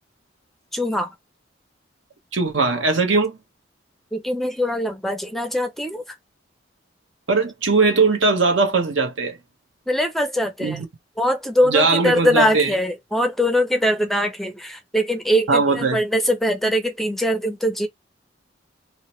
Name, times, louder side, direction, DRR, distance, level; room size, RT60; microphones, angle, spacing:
voice 1, 0.7-1.1 4.1-6.2 9.9-10.8 11.2-17.9, equal, ahead, 0.4 m, -22 dB
voice 2, 2.3-3.4 7.3-9.4 10.6-10.8 11.7-12.7 15.5-16.0, right 3 dB, 80° right, 0.9 m, -19 dB
2.8 x 2.1 x 3.0 m
head